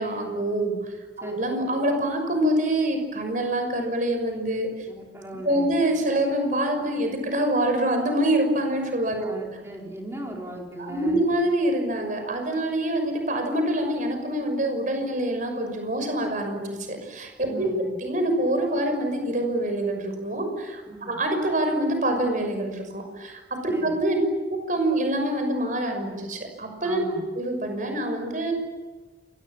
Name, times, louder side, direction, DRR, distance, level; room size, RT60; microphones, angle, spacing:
voice 1, 0.0-4.7 5.4-9.3 10.8-16.6 16.9-17.7 18.0-20.8 21.1-24.2 24.5-27.0 27.4-28.5, right 1 dB, 45° right, 5 dB, 6.1 m, -25 dB
voice 2, 4.9-5.7 9.2-11.2 17.5-17.9 20.9-21.2 23.7-24.0 26.8-27.2, right 1 dB, 15° right, -1 dB, 4.5 m, -37 dB
29.0 x 24.0 x 7.5 m, 1.2 s
head